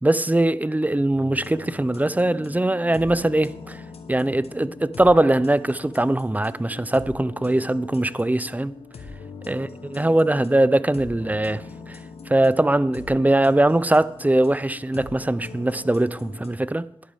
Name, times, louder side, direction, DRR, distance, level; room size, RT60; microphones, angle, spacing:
voice 1, 0.0-3.8 4.1-8.8 9.5-11.6 11.9-12.0 12.3-16.9, right 1 dB, 15° right, 0.5 m, -21 dB
sound 1, 1.1-16.5, left 4 dB, 90° left, 1.1 m, -42 dB
13.0 x 11.0 x 3.5 m
cardioid pair, 50°, 10 cm